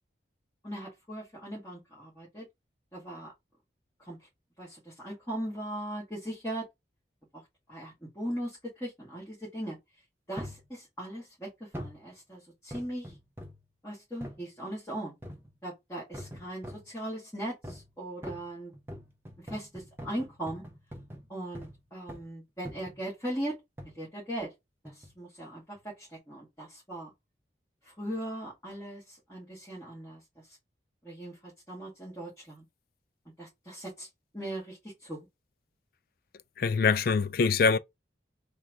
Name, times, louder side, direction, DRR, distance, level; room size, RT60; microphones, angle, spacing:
voice 1, 0.6-2.5 2.9-3.3 4.0-4.2 4.6-6.7 7.3-7.4 7.7-9.8 10.3-13.1 13.8-15.1 15.6-18.7 19.4-20.6 21.3-23.6 23.8-24.5 24.8-27.1 27.8-30.6 31.0-32.7 33.4-34.1 34.3-35.3, right 1 dB, 15° left, 1.8 m, -39 dB
sound 1, 10.4-10.7 11.7-12.0 12.7-13.7 14.2-14.4 15.2-15.6 16.1-16.9 17.6-17.9 18.2-21.8 22.1-22.3 22.7-23.0 23.8-24.0 24.8-25.2 25.8-25.9, equal, 10° right, 0.7 m, -44 dB
voice 2, 36.6-37.8, left 5 dB, 50° left, 0.3 m, -24 dB
3.6 x 2.3 x 4.5 m
head